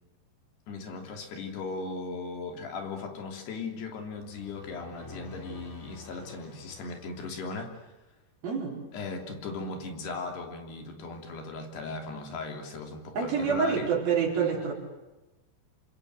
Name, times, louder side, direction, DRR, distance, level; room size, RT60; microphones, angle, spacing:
voice 1, 0.7-7.8 8.9-13.9, left 3 dB, 80° left, 3 dB, 5.2 m, -37 dB
sound 1, 4.1-8.0, left 4 dB, 15° left, 4.9 m, -49 dB
voice 2, 8.4-8.8 13.1-14.7, right 6 dB, 65° right, 0 dB, 6.2 m, -27 dB
28.5 x 26.0 x 8.0 m, 1.1 s
omnidirectional pair, 4.6 m